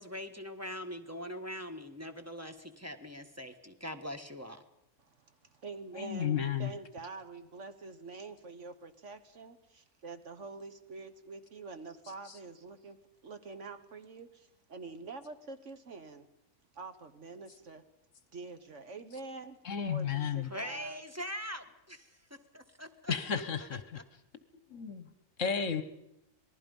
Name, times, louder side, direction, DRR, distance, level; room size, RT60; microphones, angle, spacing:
voice 1, 0.0-4.6 20.5-23.4 23.9-24.0, equal, 10° right, 6 dB, 1.3 m, -42 dB
voice 2, 5.0-13.0 13.2-16.3 16.7-17.8 18.3-21.0, right 3 dB, 55° right, 9 dB, 1.5 m, -46 dB
voice 3, 5.9-6.7 19.6-20.5 23.1-24.0 24.7-25.1 25.4-25.8, left 7 dB, 55° left, 12 dB, 1.4 m, -33 dB
26.5 x 19.5 x 5.4 m, 0.84 s
omnidirectional pair, 1.6 m